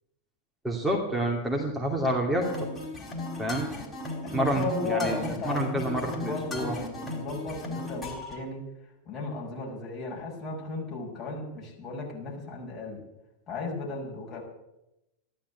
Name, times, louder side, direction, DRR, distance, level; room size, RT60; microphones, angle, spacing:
voice 1, 0.6-2.5 3.4-3.7 4.3-6.8, right 1 dB, 5° right, -1 dB, 2.5 m, -28 dB
sound 1, 2.4-8.4, left 2 dB, 15° left, 4.6 m, -37 dB
voice 2, 4.2-8.6 9.1-13.0 13.5-14.4, left 3 dB, 35° left, -1 dB, 5.8 m, -35 dB
14.5 x 12.0 x 8.2 m, 0.92 s
figure-of-eight pair, 90°, 0 cm